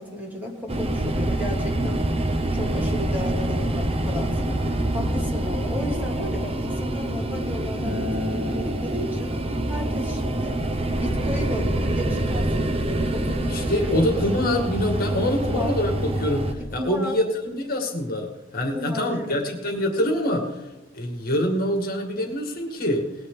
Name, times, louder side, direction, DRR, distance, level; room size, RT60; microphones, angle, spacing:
voice 1, 0.0-9.3 9.7-10.6 11.0-14.2 15.1-15.8 16.6-17.2 18.7-19.4, left 1 dB, 10° right, -1 dB, 2.8 m, -34 dB
sound 1, 0.7-16.5, right 1 dB, 30° right, 1.1 m, -26 dB
Acoustic guitar, 7.9-13.1, left 1 dB, 60° right, 2.8 m, -37 dB
voice 2, 13.4-18.3 18.5-20.5 20.9-23.0, left 1 dB, 45° left, 3 dB, 2.1 m, -25 dB
18.5 x 10.5 x 3.9 m, 1.1 s
head